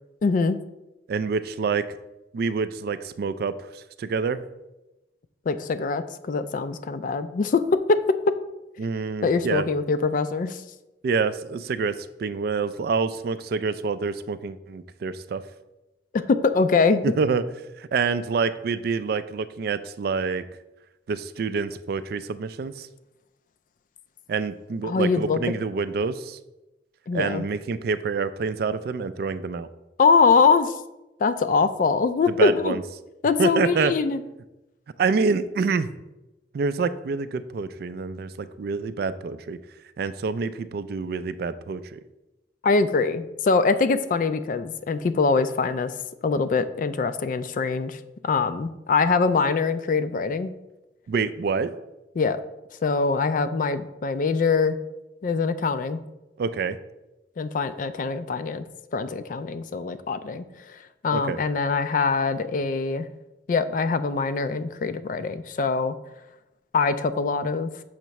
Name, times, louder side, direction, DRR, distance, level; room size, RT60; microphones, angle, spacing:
voice 1, 0.2-0.6 5.5-7.6 7.9-8.0 9.2-10.6 16.1-17.1 24.8-25.4 27.1-27.4 30.0-30.7 31.2-32.8 33.2-34.2 42.6-45.9 46.2-50.5 52.2-52.4 52.8-54.8 55.2-56.0 57.4-58.6 58.9-63.1 63.5-66.0 66.7-67.7, left 4 dB, 45° left, 12 dB, 0.3 m, -23 dB
voice 2, 1.1-2.0 2.3-4.4 8.8-9.7 11.0-15.4 17.0-17.4 17.8-20.4 21.1-22.9 24.3-26.4 27.1-29.7 32.3-32.8 33.4-33.9 35.0-35.9 36.5-39.6 40.0-42.0 51.1-51.7 56.4-56.8 61.1-61.4, right 5 dB, 55° right, 13 dB, 0.3 m, -27 dB
6.4 x 3.0 x 5.7 m, 0.98 s
head